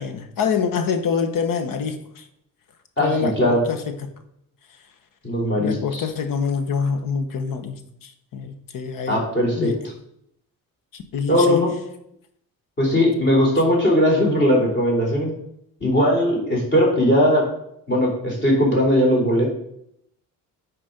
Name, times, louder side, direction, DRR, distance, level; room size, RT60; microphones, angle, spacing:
voice 1, 0.0-2.3 3.0-4.1 5.6-9.3 9.5-9.8 10.9-11.6, left 6 dB, 70° left, 1.1 m, -26 dB
voice 2, 3.0-3.6 5.2-6.0 9.1-9.7 11.3-11.7 12.8-15.3 15.8-17.5 17.9-19.5, equal, 30° left, 3.6 m, -19 dB
9.9 x 4.4 x 5.2 m
cardioid pair, 125°, 34 cm